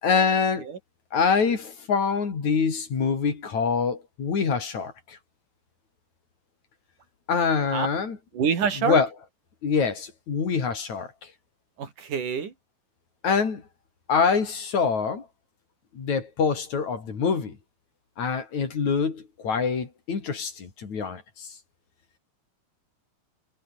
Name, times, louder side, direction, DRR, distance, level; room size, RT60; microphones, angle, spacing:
voice 1, 0.0-0.7 1.1-5.2 7.3-8.2 8.8-9.1 9.6-11.3 13.2-13.6 14.1-15.3 15.9-17.6 18.2-21.5, left 5 dB, 65° left, 5.2 m, -25 dB
voice 2, 8.3-9.0 11.8-12.5, right 6 dB, 85° right, 5.0 m, -26 dB
omnidirectional pair, 3.5 m